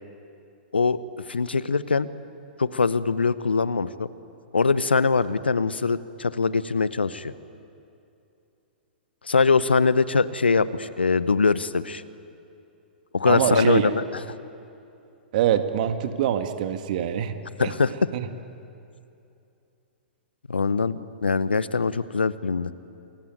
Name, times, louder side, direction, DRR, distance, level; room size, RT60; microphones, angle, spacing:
voice 1, 1.3-2.1 2.6-4.1 4.5-7.3 9.2-12.0 13.1-14.0 17.6-17.9 20.5-22.7, left 4 dB, 80° left, 16 dB, 1.0 m, -22 dB
voice 2, 13.3-13.9 15.3-17.3 17.6-17.7 18.1-18.3, right 10 dB, 50° right, 8 dB, 2.0 m, -24 dB
28.0 x 22.5 x 9.3 m, 2.7 s
figure-of-eight pair, 110°, 6 cm